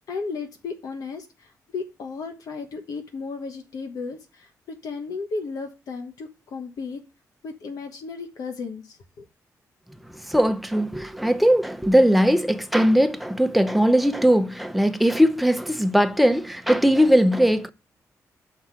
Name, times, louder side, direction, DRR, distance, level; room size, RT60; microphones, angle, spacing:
voice 1, 0.1-7.0 7.4-9.2, left 4 dB, 75° left, 1.2 m, -34 dB
voice 2, 10.1-17.7, equal, ahead, 0.6 m, -19 dB
5.8 x 4.7 x 5.8 m
cardioid pair, 95°, 6 cm